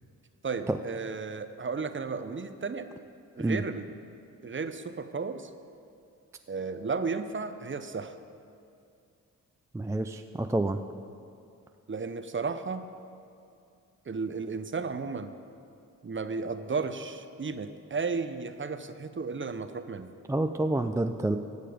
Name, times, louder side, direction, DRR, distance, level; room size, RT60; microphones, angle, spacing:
voice 1, 0.4-2.9 3.4-4.0 4.4-5.5 6.5-8.1 11.9-12.8 14.1-15.3 16.0-20.1, right 4 dB, 30° right, 10 dB, 0.8 m, -34 dB
voice 2, 9.7-10.8 20.3-21.4, right 2 dB, 10° right, 7 dB, 0.5 m, -28 dB
16.5 x 6.7 x 5.1 m, 2.5 s
hypercardioid pair, 40°, 38 cm